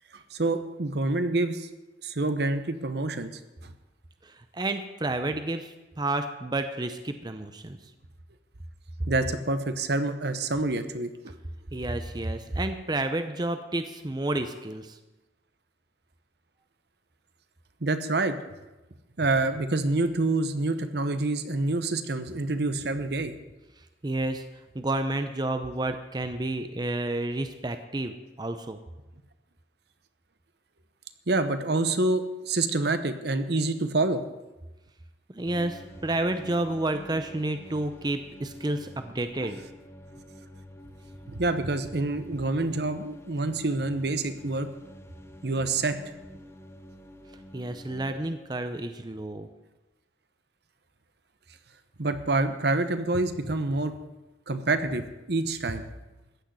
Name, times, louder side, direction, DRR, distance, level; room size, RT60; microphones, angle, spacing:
voice 1, 0.3-1.7 2.0-3.3 3.6-3.7 9.1-11.3 17.8-18.3 19.2-23.3 31.3-34.2 39.4-39.5 41.3-44.7 45.4-46.0 52.0-53.9 54.5-55.9, right 2 dB, 60° right, 10 dB, 1.0 m, -27 dB
voice 2, 4.2-7.8 11.7-15.0 24.0-24.4 24.7-28.8 35.3-39.6 47.5-49.5, right 2 dB, 25° right, 8 dB, 0.7 m, -30 dB
sound 1, 35.4-48.4, left 1 dB, 15° left, 0.8 m, -48 dB
14.5 x 6.4 x 9.5 m, 1.1 s
head